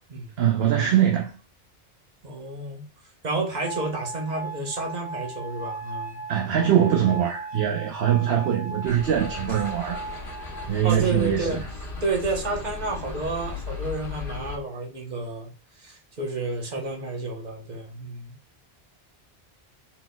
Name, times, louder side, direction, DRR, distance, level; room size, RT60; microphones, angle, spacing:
voice 1, 0.4-1.3 6.3-10.1 10.7-11.6, right 10 dB, 75° right, 0.9 m, -22 dB
voice 2, 2.2-2.8 3.2-6.2 10.8-11.6 12.0-15.5 15.8-18.3, right 3 dB, 45° right, 1.1 m, -30 dB
sound 1, 3.7-10.7, right 3 dB, 85° left, 0.8 m, -37 dB
sound 2, 8.8-14.6, left 5 dB, 60° left, 1.3 m, -36 dB
4.4 x 3.9 x 2.2 m
omnidirectional pair, 1.1 m